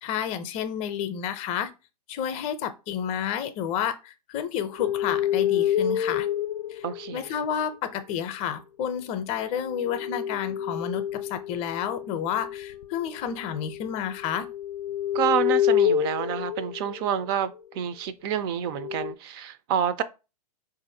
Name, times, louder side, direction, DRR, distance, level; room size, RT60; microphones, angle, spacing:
voice 1, 0.0-1.7 2.1-6.3 6.7-6.8 7.1-14.5, left 9 dB, 30° left, 0.6 m, -30 dB
sound 1, 4.8-7.6 9.6-17.3 18.7-19.1, left 10 dB, 80° left, 0.4 m, -28 dB
voice 2, 6.8-7.2 15.1-20.0, right 9 dB, 40° right, 0.4 m, -28 dB
4.5 x 2.5 x 2.7 m
hypercardioid pair, 125°, 20 cm